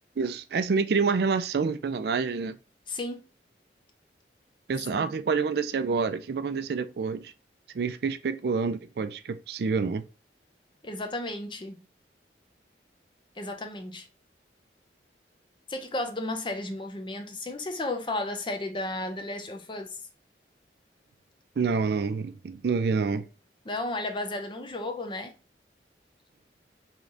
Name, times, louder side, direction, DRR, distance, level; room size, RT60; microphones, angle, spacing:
voice 1, 0.2-2.6 4.7-7.3 7.7-10.0 21.6-23.2, right 5 dB, 60° right, 0.4 m, -27 dB
voice 2, 2.9-3.2 4.9-5.1 10.8-11.9 13.4-14.1 15.7-20.0 23.7-25.3, left 2 dB, 25° left, 0.6 m, -33 dB
3.6 x 3.3 x 3.8 m
head